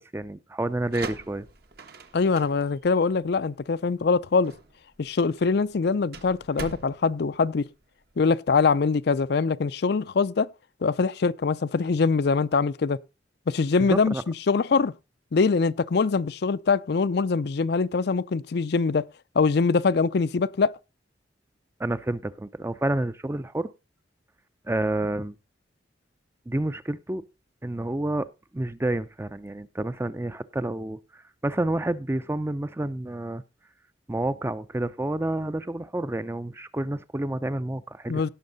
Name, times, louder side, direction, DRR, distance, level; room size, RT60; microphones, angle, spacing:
voice 1, 0.0-1.5 13.8-14.2 21.8-23.7 24.6-25.3 26.5-27.2 27.6-28.3 28.5-33.4 34.1-38.2, right 1 dB, 15° right, 0.5 m, -29 dB
sound 1, 0.7-8.3, right 3 dB, 55° right, 1.4 m, -43 dB
voice 2, 2.1-4.5 5.0-7.7 8.2-10.5 10.8-13.0 13.5-14.1 14.5-14.9 15.3-19.0 19.4-20.7 38.1-38.3, left 4 dB, 60° left, 0.5 m, -23 dB
17.0 x 6.4 x 4.0 m
head